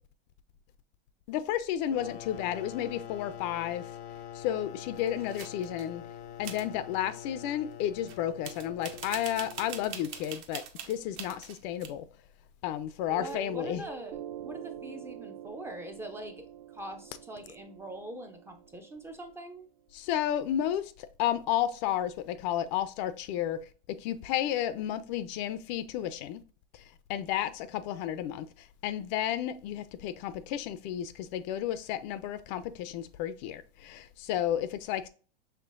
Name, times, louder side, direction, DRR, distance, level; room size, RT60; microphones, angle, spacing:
voice 1, 1.3-3.9 4.3-6.0 6.4-12.1 12.6-13.8 19.9-23.6 23.9-26.4 26.7-26.8 27.1-35.1, left 11 dB, 45° left, 0.4 m, -32 dB
sound 1, 1.9-10.4, left 10 dB, 85° left, 0.6 m, -45 dB
sound 2, 4.9-5.9 6.4-6.7 8.1-8.2 8.4-11.9, right 8 dB, 40° right, 0.8 m, -43 dB
Piano, 13.1-20.1, right 10 dB, 80° right, 0.6 m, -46 dB
voice 2, 13.2-19.7, right 1 dB, 10° right, 0.4 m, -43 dB
5.7 x 3.3 x 2.4 m
supercardioid pair, 125°, 30 cm